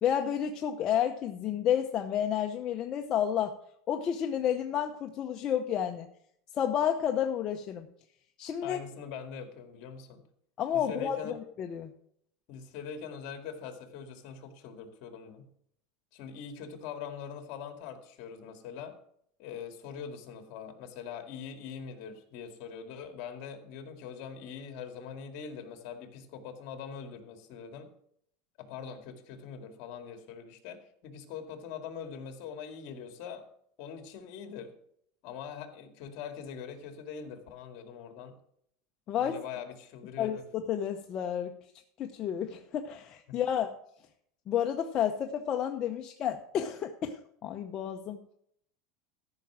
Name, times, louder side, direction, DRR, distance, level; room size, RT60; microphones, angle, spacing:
voice 1, 0.0-3.6 3.9-6.0 6.5-7.9 8.4-8.8 10.6-11.9 39.1-39.3 40.2-41.6 42.0-43.8 44.5-48.2, left 9 dB, 30° left, 4 dB, 0.7 m, -31 dB
voice 2, 8.6-10.2 10.7-11.3 12.5-15.5 16.1-18.9 19.4-27.9 28.6-33.4 33.8-34.7 35.2-38.3 39.1-40.4 43.3-43.4, left 7 dB, 50° left, 6 dB, 2.0 m, -43 dB
13.5 x 5.8 x 6.2 m, 0.69 s
supercardioid pair, 155°, 2 cm